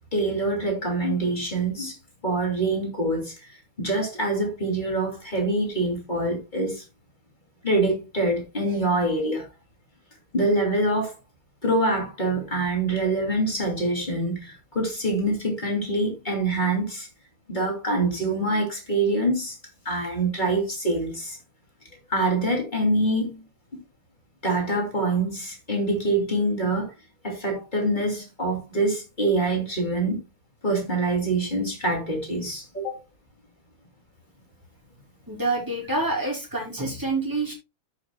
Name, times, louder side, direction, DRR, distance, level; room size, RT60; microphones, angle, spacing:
voice 1, 0.1-2.0 2.2-3.3 3.8-6.8 7.6-9.5 10.3-11.1 11.6-17.1 17.5-19.5 19.8-21.4 22.1-23.4 24.4-26.9 27.2-30.2 30.6-33.0, right 2 dB, 20° left, 2.7 m, -25 dB
voice 2, 35.3-37.5, right 2 dB, 10° right, 3.0 m, -27 dB
13.0 x 6.4 x 2.2 m
omnidirectional pair, 2.3 m